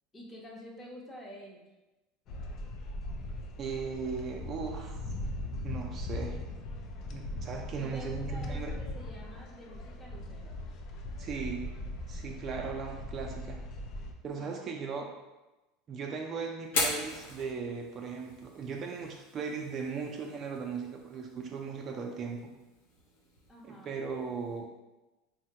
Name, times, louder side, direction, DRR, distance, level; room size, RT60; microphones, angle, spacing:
voice 1, 0.1-1.6 7.7-10.6 14.4-14.7 23.5-23.9, equal, 20° left, -2 dB, 0.7 m, -48 dB
sound 1, 2.3-14.1, left 1 dB, 50° left, 0.4 m, -39 dB
voice 2, 3.6-5.0 5.6-6.4 7.1-8.7 11.2-11.7 12.1-13.6 14.2-15.1 15.9-22.5 23.6-24.7, right 5 dB, 40° right, 1 dB, 0.4 m, -37 dB
Fire, 16.6-24.6, left 2 dB, 85° left, 0.7 m, -40 dB
3.6 x 2.0 x 2.8 m, 1.1 s
supercardioid pair, 115°, 0 cm